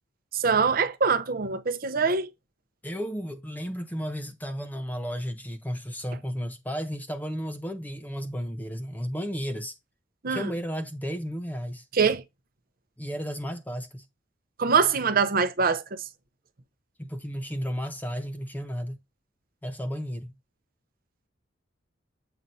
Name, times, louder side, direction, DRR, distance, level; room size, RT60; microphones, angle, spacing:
voice 1, 0.3-2.3 10.2-10.5 11.9-12.2 14.6-16.0, right 5 dB, 50° right, 0.7 m, -24 dB
voice 2, 2.8-9.7 10.3-11.9 13.0-14.0 17.0-19.0 19.6-20.4, equal, 10° left, 0.7 m, -33 dB
7.6 x 2.7 x 5.4 m
head